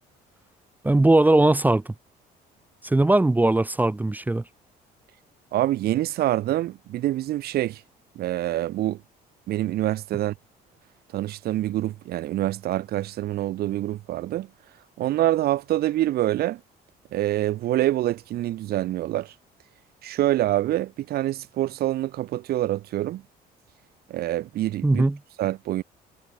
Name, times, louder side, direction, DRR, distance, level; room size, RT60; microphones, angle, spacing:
voice 1, 0.8-1.8 2.8-4.4 24.8-25.2, right 2 dB, 10° right, 0.8 m, -19 dB
voice 2, 5.5-7.8 8.2-9.0 9.5-10.3 11.1-14.5 15.0-16.6 17.1-19.3 20.0-23.2 24.1-25.0 25.4-25.8, right 14 dB, 65° right, 1.0 m, -26 dB
cardioid pair, 110°, 17 cm